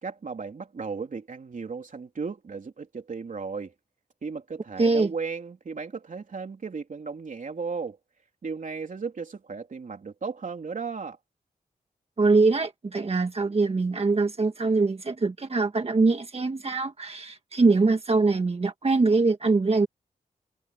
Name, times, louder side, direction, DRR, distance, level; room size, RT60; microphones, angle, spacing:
voice 1, 0.0-3.7 4.2-8.0 8.4-11.2, right 5 dB, 60° right, 3.4 m, -35 dB
voice 2, 4.8-5.1 12.2-19.9, right 3 dB, 40° right, 1.5 m, -23 dB
wide cardioid pair, 95°, 15 cm